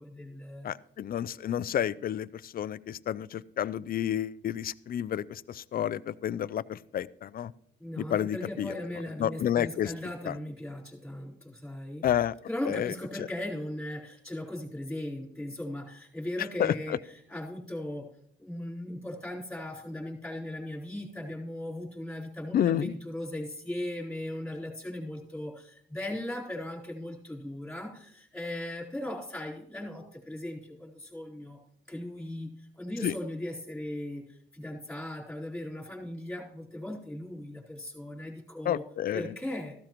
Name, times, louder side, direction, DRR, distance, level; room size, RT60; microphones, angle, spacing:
voice 1, 0.0-0.7 7.8-12.0 12.5-17.0 17.3-18.1 18.4-31.6 31.9-34.2 34.5-38.8 39.1-39.8, left 1 dB, 5° left, -3 dB, 4.0 m, -38 dB
voice 2, 0.6-7.5 8.0-8.7 9.2-9.9 10.2-10.4 12.0-12.3 12.7-12.9 13.2-13.3 16.4-17.0 22.5-22.9 33.0-33.1 38.6-39.2, left 10 dB, 50° left, 19 dB, 0.4 m, -30 dB
14.5 x 12.5 x 3.0 m, 0.70 s
cardioid pair, 90°, 20 cm